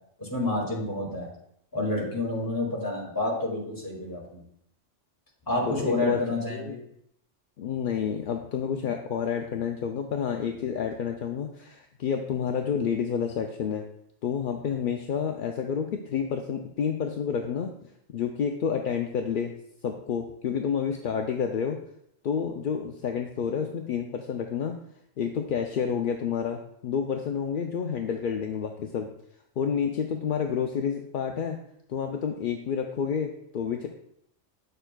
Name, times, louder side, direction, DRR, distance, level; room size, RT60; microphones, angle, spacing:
voice 1, 0.2-1.3 1.7-4.4 5.5-6.8, left 2 dB, 15° left, -4 dB, 2.2 m, -29 dB
voice 2, 5.7-6.2 6.5-6.8 7.6-13.8 14.2-17.7 18.1-19.5 19.8-21.8 22.2-24.8 25.2-29.1 29.6-31.6 31.9-33.9, left 7 dB, 60° left, 4 dB, 0.6 m, -29 dB
8.7 x 6.7 x 2.3 m, 0.74 s
omnidirectional pair, 1.2 m